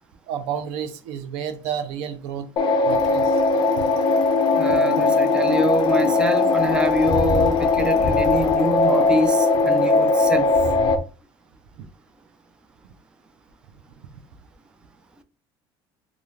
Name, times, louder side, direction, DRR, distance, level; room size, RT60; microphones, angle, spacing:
voice 1, 0.3-2.5 2.8-3.4 11.8-11.9, right 8 dB, 80° right, 0.5 m, -30 dB
sound 1, 2.6-10.9, left 3 dB, 50° left, 0.5 m, -19 dB
Bicycle, 2.9-11.0, left 3 dB, 5° left, 0.8 m, -32 dB
voice 2, 4.5-10.5, right 2 dB, 10° right, 0.3 m, -25 dB
2.4 x 2.4 x 3.1 m
supercardioid pair, 110°, 11 cm